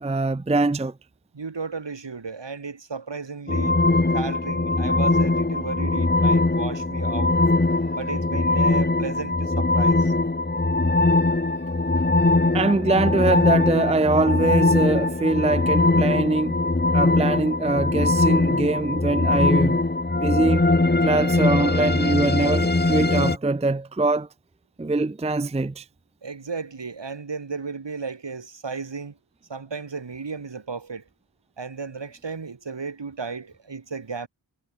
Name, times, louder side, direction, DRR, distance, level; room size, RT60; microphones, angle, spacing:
voice 1, 0.0-0.9 12.5-16.6 16.9-19.8 20.2-20.6 21.0-24.3 24.8-25.8, right 2 dB, 15° right, 0.6 m, -23 dB
voice 2, 1.3-3.8 4.1-7.4 7.9-10.1 26.2-29.2 29.5-31.0 31.6-34.3, right 4 dB, 60° right, 3.0 m, -34 dB
sound 1, 3.5-23.4, left 2 dB, 20° left, 1.6 m, -21 dB
cardioid pair, 45°, 49 cm